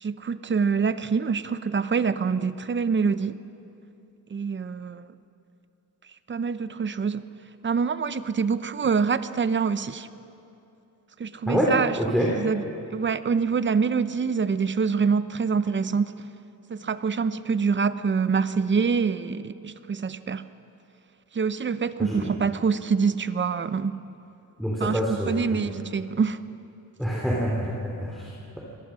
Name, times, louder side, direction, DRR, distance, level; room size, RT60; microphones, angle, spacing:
voice 1, 0.0-3.4 4.3-5.1 6.3-7.2 7.6-10.1 11.2-12.0 12.3-12.6 12.9-16.2 16.7-20.5 21.3-24.0 24.8-26.4, right 5 dB, 35° right, 13 dB, 0.7 m, -25 dB
voice 2, 12.0-12.3 22.0-22.3 24.6-25.7 27.0-28.6, equal, ahead, -3 dB, 3.0 m, -26 dB
23.0 x 18.0 x 6.3 m, 2.8 s
cardioid pair, 105°, 35 cm